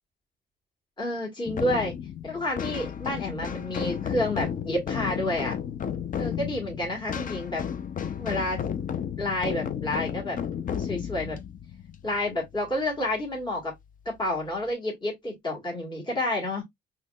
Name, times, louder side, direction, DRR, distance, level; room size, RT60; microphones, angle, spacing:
voice 1, 1.0-2.0 2.2-5.6 6.2-7.6 8.2-8.6 9.2-10.4 10.8-11.4 12.0-13.7 14.0-16.6, left 1 dB, 25° left, 1.5 m, -29 dB
sound 1, 1.5-12.9, left 8 dB, 45° left, 0.5 m, -33 dB
4.0 x 3.0 x 2.2 m
cardioid pair, 90°, 20 cm